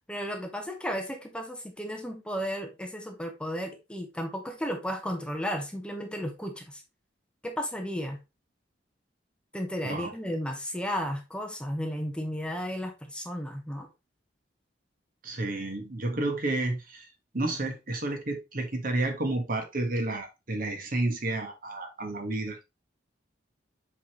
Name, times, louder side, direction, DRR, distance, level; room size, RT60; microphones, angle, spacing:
voice 1, 0.1-6.8 7.4-8.2 9.5-13.9, equal, 5° left, 4 dB, 0.9 m, -34 dB
voice 2, 15.2-17.1 17.3-22.6, right 2 dB, 50° right, 4 dB, 1.4 m, -31 dB
7.7 x 4.1 x 3.0 m, 0.25 s
head